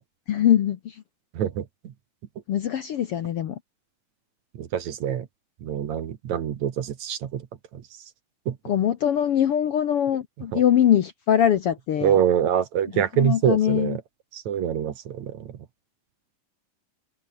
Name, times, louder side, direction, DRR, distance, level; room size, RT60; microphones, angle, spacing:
voice 1, 0.3-0.9 2.5-3.6 8.7-12.2 13.2-14.0, left 10 dB, 60° left, 1.6 m, -22 dB
voice 2, 1.3-1.7 4.6-5.3 5.6-7.5 7.7-7.8 8.5-8.6 10.5-10.6 12.0-14.0 14.3-15.5, right 9 dB, 65° right, 2.8 m, -25 dB
omnidirectional pair, 3.7 m